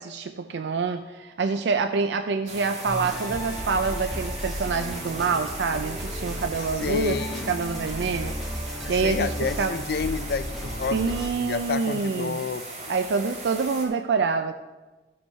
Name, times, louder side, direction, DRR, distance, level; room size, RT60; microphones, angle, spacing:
voice 1, 0.0-7.2 7.5-8.3 8.9-9.7 10.9-12.5 12.9-14.5, right 4 dB, 70° right, 8 dB, 0.4 m, -26 dB
sound 1, 2.5-13.9, right 2 dB, 35° right, 1.6 m, -39 dB
sound 2, 2.8-11.3, equal, ahead, 1.2 m, -34 dB
voice 2, 6.8-7.5 8.8-12.7, left 5 dB, 60° left, 13 dB, 0.4 m, -30 dB
12.0 x 5.4 x 5.6 m, 1.2 s
head